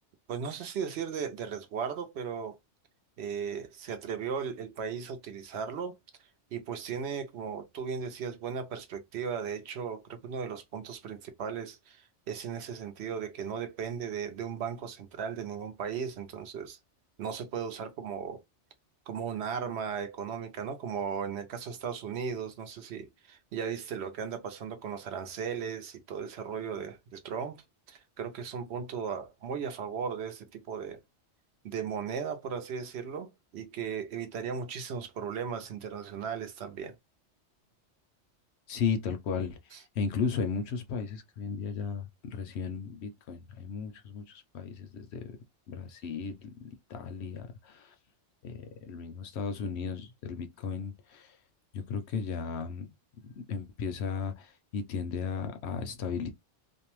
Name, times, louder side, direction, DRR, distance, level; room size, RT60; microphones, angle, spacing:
voice 1, 0.3-2.6 3.2-6.0 6.5-16.8 17.2-18.4 19.1-27.6 27.9-31.0 31.6-36.9 39.7-39.8, right 7 dB, 70° right, 0.8 m, -36 dB
voice 2, 38.7-39.6 39.9-45.4 45.7-47.9 48.4-51.4 51.7-52.9 53.2-56.3, left 5 dB, 70° left, 0.8 m, -35 dB
2.6 x 2.0 x 2.9 m
omnidirectional pair, 1.2 m